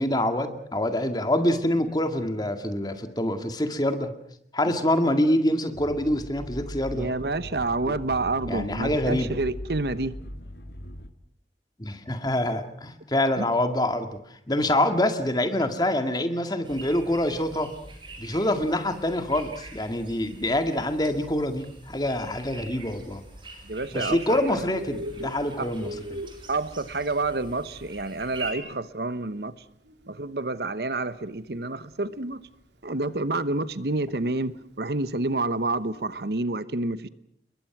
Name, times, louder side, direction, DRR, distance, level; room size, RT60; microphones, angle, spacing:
voice 1, 0.0-4.1 4.5-7.1 7.9-8.0 8.5-9.4 11.8-17.7 18.2-23.2 23.9-26.2, left 1 dB, 25° left, 2.1 m, -26 dB
sound 1, 5.7-11.1, equal, 70° left, 2.2 m, -39 dB
voice 2, 6.9-10.2 13.4-13.5 23.6-24.2 24.5-24.7 25.6-25.7 26.5-29.5 30.1-32.4 32.8-37.1, right 2 dB, 65° right, 1.0 m, -28 dB
sound 2, 16.6-28.5, right 3 dB, 25° right, 5.6 m, -44 dB
Bird, 24.2-36.4, equal, 90° right, 3.1 m, -44 dB
30.0 x 22.0 x 6.1 m
head